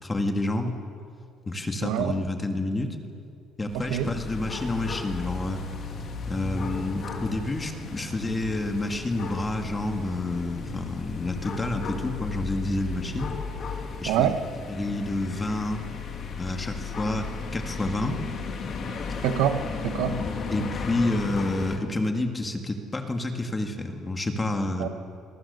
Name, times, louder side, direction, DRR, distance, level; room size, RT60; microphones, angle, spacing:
voice 1, 0.0-0.7 1.5-3.0 3.6-5.6 6.3-13.3 14.0-14.3 14.7-15.8 16.4-18.2 20.5-24.9, left 2 dB, 10° left, 4 dB, 1.8 m, -29 dB
voice 2, 1.8-2.2 3.9-4.1 14.1-14.4 19.2-20.3 24.8-24.9, right 10 dB, 90° right, 9 dB, 1.3 m, -25 dB
sound 1, 3.7-21.8, left 4 dB, 35° left, 2.3 m, -35 dB
26.5 x 22.0 x 6.8 m, 2.4 s
cardioid pair, 175°, 0 cm